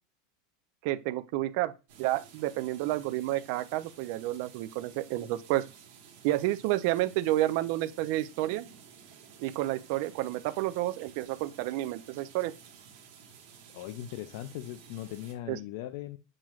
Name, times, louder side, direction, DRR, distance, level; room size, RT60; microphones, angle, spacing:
voice 1, 0.8-1.7 2.0-5.6 6.2-8.7 9.4-12.5 15.5-15.6, right 16 dB, 45° right, 0.3 m, -30 dB
sound 1, 1.9-15.3, right 7 dB, 60° right, 1.1 m, -53 dB
voice 2, 13.7-16.2, left 13 dB, 50° left, 0.3 m, -39 dB
7.4 x 3.1 x 2.3 m
supercardioid pair, 180°, 0 cm